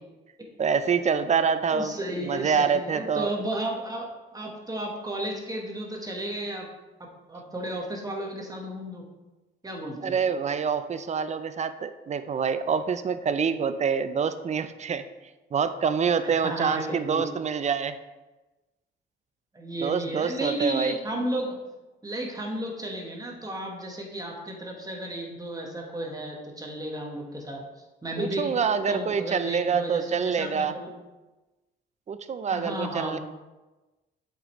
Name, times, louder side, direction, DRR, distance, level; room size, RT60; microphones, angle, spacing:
voice 1, 0.6-3.3 10.0-15.0 15.5-18.0 19.8-21.0 28.2-30.7 32.1-33.2, right 6 dB, 35° right, 11 dB, 0.5 m, -26 dB
voice 2, 1.7-4.1 4.3-6.7 7.0-9.0 9.6-10.2 16.2-17.2 19.5-21.6 22.0-27.6 28.0-28.5 28.9-30.9 32.5-33.2, right 1 dB, 20° right, -1 dB, 1.3 m, -33 dB
7.8 x 5.1 x 3.1 m, 1.1 s
cardioid pair, 90°, 20 cm